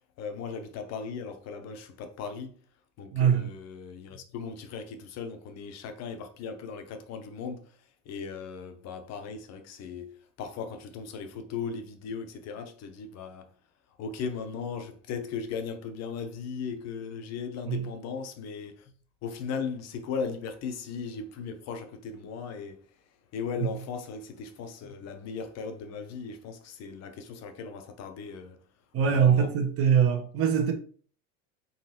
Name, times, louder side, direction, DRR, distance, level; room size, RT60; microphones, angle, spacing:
voice 1, 0.2-2.5 3.0-7.6 8.1-13.5 14.0-18.9 19.2-22.8 23.3-28.6 29.0-29.5, left 5 dB, 40° left, 0.9 m, -37 dB
voice 2, 3.1-3.5 17.7-17.8 23.6-23.7 28.9-30.7, right 7 dB, 35° right, 1.2 m, -23 dB
4.4 x 4.0 x 2.9 m
hypercardioid pair, 100°, 39 cm